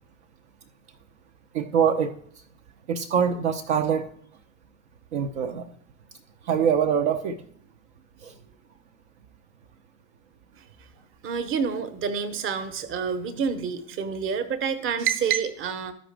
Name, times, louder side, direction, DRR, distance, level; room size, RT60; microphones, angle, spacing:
voice 1, 1.5-2.1 2.9-4.1 5.1-5.7 6.4-7.4 8.2-8.3, right 7 dB, 60° right, 6 dB, 0.6 m, -24 dB
voice 2, 11.2-15.9, right 6 dB, 30° right, 11 dB, 0.9 m, -28 dB
13.0 x 5.1 x 3.3 m, 0.62 s
figure-of-eight pair, 70°, 39 cm